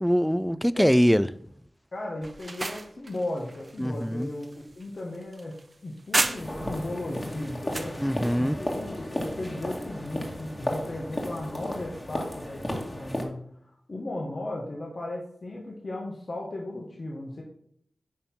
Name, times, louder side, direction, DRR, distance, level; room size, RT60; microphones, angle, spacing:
voice 1, 0.0-1.3 3.8-4.3 8.0-8.6, equal, ahead, 0.4 m, -23 dB
voice 2, 1.9-5.5 5.8-17.4, left 1 dB, 55° left, 1.7 m, -36 dB
sound 1, 2.2-6.8 7.2-8.0, right 2 dB, 40° right, 0.8 m, -33 dB
sound 2, 6.3-13.2, left 1 dB, 25° left, 2.2 m, -34 dB
9.4 x 3.6 x 6.1 m
cardioid pair, 40°, 0 cm